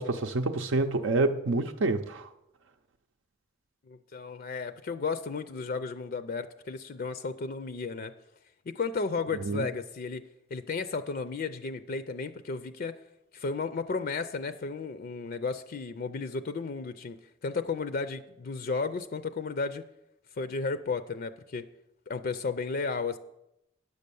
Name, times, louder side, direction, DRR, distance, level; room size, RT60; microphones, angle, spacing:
voice 1, 0.0-2.3 9.4-9.7, right 2 dB, 75° right, 0.6 m, -27 dB
voice 2, 3.9-8.1 8.7-10.2 10.5-13.0 13.3-19.9 20.4-21.7 22.1-23.2, left 4 dB, 50° left, 0.4 m, -33 dB
9.8 x 6.5 x 6.9 m
head